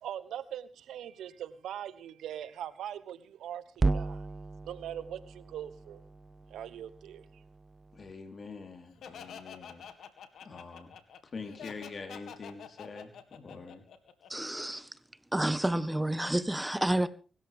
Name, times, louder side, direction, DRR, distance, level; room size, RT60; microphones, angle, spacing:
voice 1, 0.0-3.6 3.9-4.3 4.6-6.0 6.5-7.4, right 10 dB, 85° right, 1.2 m, -41 dB
sound 1, 3.8-8.1, right 3 dB, 35° right, 0.7 m, -35 dB
voice 2, 7.9-9.9 10.4-11.0 11.3-13.9, left 4 dB, 55° left, 4.1 m, -45 dB
Laughter, 9.0-14.7, left 7 dB, 80° left, 2.0 m, -48 dB
voice 3, 14.3-14.9 15.3-17.1, right 1 dB, 10° right, 1.5 m, -29 dB
24.0 x 13.5 x 3.7 m
supercardioid pair, 50°, 0 cm